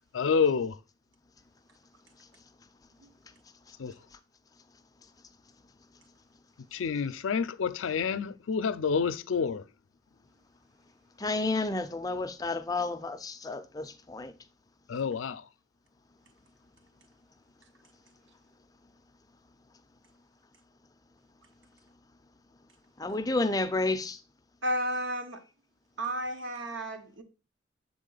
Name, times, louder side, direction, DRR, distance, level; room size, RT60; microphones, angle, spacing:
voice 1, 0.1-0.7 3.8-3.9 6.7-9.6 14.9-15.4, left 6 dB, 85° left, 0.4 m, -28 dB
voice 2, 11.2-14.3 23.0-24.2, left 2 dB, 20° left, 0.4 m, -31 dB
voice 3, 24.6-25.4 26.0-27.2, equal, 75° right, 1.0 m, -32 dB
7.3 x 3.6 x 3.8 m
head